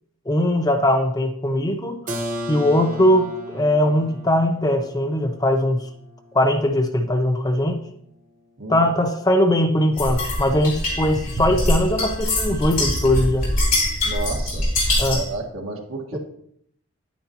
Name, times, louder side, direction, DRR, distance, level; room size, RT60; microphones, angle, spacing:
voice 1, 0.3-2.0 2.5-5.8 6.3-7.8 8.7-13.5 15.0-15.2 16.1-16.2, left 1 dB, 20° left, 6 dB, 0.6 m, -20 dB
Keyboard (musical), 2.1-7.7, equal, 40° right, 1.2 m, -36 dB
voice 2, 8.6-8.9 14.0-14.7 15.1-16.2, right 2 dB, 80° right, 1 dB, 1.7 m, -31 dB
sound 1, 10.0-15.3, left 1 dB, 40° left, 3.5 m, -23 dB
10.0 x 9.3 x 2.9 m, 0.68 s
head